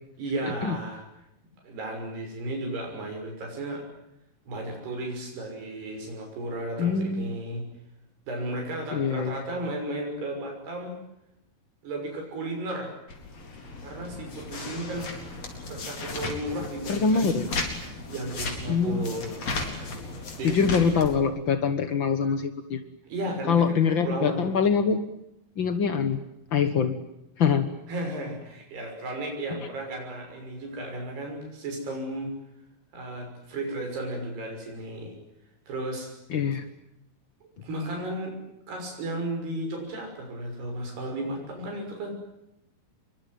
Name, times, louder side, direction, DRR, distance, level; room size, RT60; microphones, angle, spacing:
voice 1, 0.2-1.0 1.6-3.8 4.5-7.6 8.3-11.0 11.8-12.9 13.8-15.1 15.7-17.4 18.1-19.4 20.4-20.9 23.1-23.7 24.0-24.5 27.9-32.3 32.9-35.1 35.7-36.1 37.6-38.4 38.7-42.1, right 1 dB, 85° right, 2 dB, 8.2 m, -34 dB
voice 2, 6.8-7.4 8.9-9.4 16.9-17.5 18.7-19.1 20.4-22.8 23.5-25.0 25.6-26.2 26.5-27.0 27.4-27.7 36.3-36.6, left 6 dB, 80° left, 9 dB, 1.1 m, -24 dB
sound 1, 13.1-21.2, left 3 dB, 40° left, 5.1 m, -35 dB
26.0 x 23.0 x 9.5 m, 0.84 s
omnidirectional pair, 4.5 m